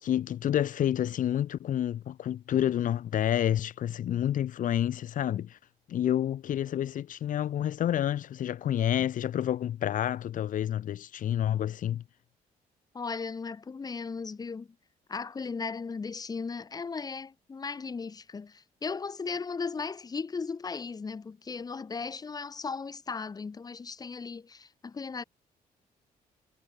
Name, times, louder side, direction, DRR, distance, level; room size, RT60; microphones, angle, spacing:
voice 1, 0.0-5.6 5.9-12.0, left 11 dB, 60° left, 2.8 m, -29 dB
voice 2, 12.9-14.7 15.1-25.2, left 5 dB, 25° left, 3.1 m, -36 dB
cardioid pair, 145°, 15 cm